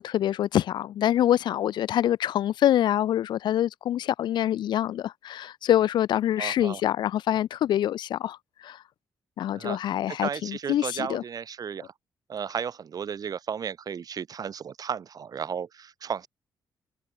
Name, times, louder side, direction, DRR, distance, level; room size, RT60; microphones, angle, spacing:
voice 1, 0.0-8.4 8.6-8.8 9.4-11.2, left 11 dB, 80° left, 0.9 m, -25 dB
voice 2, 6.4-6.8 9.5-9.8 10.1-11.9 12.3-16.3, right 7 dB, 55° right, 7.1 m, -34 dB
cardioid pair, 95°, 8 cm